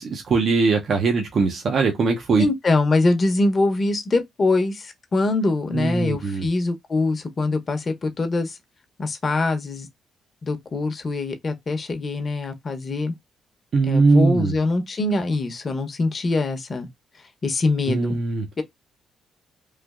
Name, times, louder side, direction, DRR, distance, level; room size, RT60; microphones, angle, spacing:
voice 1, 0.0-2.4 5.7-6.5 13.7-14.5 17.9-18.5, right 4 dB, 55° right, 0.7 m, -20 dB
voice 2, 2.4-8.6 9.0-9.9 10.4-13.1 13.9-16.9 17.4-18.2 18.6-18.7, left 2 dB, 35° left, 0.8 m, -23 dB
3.2 x 2.5 x 2.4 m
cardioid pair, 90°, 0 cm